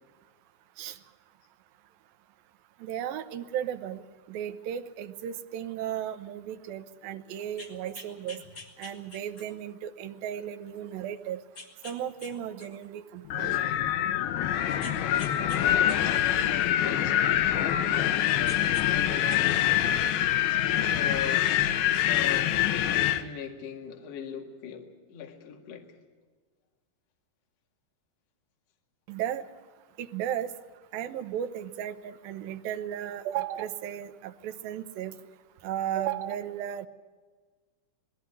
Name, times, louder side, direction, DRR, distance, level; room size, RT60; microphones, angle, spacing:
voice 1, 2.8-4.0 4.3-8.4 8.8-11.4 11.8-13.6 29.1-29.5 30.0-30.5 30.9-35.2 35.6-36.9, right 10 dB, 75° right, 8 dB, 2.2 m, -35 dB
sound 1, 7.4-9.7 10.3-10.4 11.5-12.3 12.6-13.9 14.8-15.6 15.9-18.1 18.4-18.9 19.2-20.6 21.6-21.7, left 2 dB, 30° left, 1.9 m, -47 dB
Wind, 13.3-23.2, left 11 dB, 75° left, 2.4 m, -25 dB
voice 2, 15.7-19.9 20.5-21.6 22.1-22.6 22.9-25.9, left 7 dB, 45° left, 2 dB, 2.5 m, -40 dB
20.0 x 15.0 x 9.7 m, 1.4 s
omnidirectional pair, 5.0 m